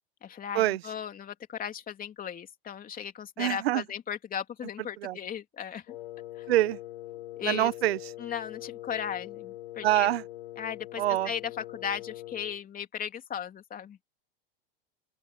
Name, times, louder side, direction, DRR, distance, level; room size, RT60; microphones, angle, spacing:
voice 1, 0.2-6.0 6.4-6.5 7.3-7.7 8.2-10.1 10.6-11.4 11.7-14.0, left 8 dB, 30° left, 3.1 m, -36 dB
voice 2, 3.4-3.8 5.0-5.2 6.5-6.8 7.4-8.1 9.8-10.2 11.0-11.3, right 15 dB, 90° right, 0.8 m, -25 dB
Wind instrument woodwind instrument, 5.9-12.6, left 16 dB, 90° left, 0.9 m, -43 dB
open air
supercardioid pair, 115°, 30 cm